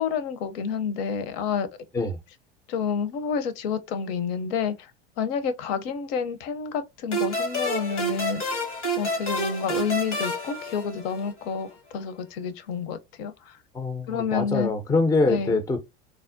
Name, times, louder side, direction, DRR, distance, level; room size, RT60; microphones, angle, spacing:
voice 1, 0.0-1.7 2.7-4.9 5.2-8.6 9.0-13.6 14.1-14.7 15.3-15.5, left 6 dB, 60° left, 0.7 m, -29 dB
sound 1, 7.1-11.5, right 1 dB, 90° left, 1.3 m, -29 dB
voice 2, 13.7-15.8, left 3 dB, 10° left, 0.4 m, -24 dB
3.4 x 2.0 x 2.5 m
hypercardioid pair, 85°, 34 cm